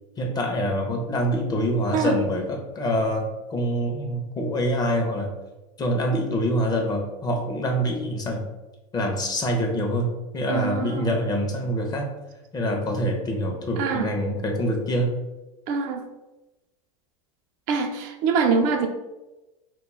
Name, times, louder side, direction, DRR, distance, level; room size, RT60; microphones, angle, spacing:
voice 1, 0.2-5.3 5.8-8.4 8.9-10.1 10.3-12.1 12.5-15.1, equal, 25° left, 2 dB, 0.5 m, -25 dB
voice 2, 10.5-11.1 13.8-14.1 15.7-16.0 17.7-18.9, right 5 dB, 50° right, 4 dB, 0.4 m, -24 dB
2.3 x 2.1 x 3.1 m, 1.0 s
supercardioid pair, 115°, 17 cm